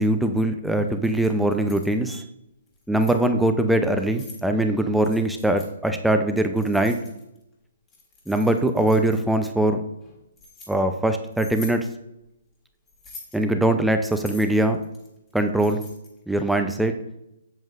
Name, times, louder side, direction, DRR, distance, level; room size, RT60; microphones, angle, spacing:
voice 1, 0.0-2.2 2.9-7.0 8.3-9.8 10.7-11.8 13.3-14.8 15.3-15.8 16.3-16.9, right 1 dB, ahead, 7 dB, 0.5 m, -22 dB
Keys jangling, 0.9-1.9 2.7-3.2 3.9-4.4 5.0-5.7 6.6-7.4 7.9-9.3 10.0-10.7 11.3-11.8 12.9-13.4 14.1-16.2, left 3 dB, 20° left, 1.9 m, -45 dB
7.9 x 7.2 x 2.5 m, 0.85 s
hypercardioid pair, 140°, 0 cm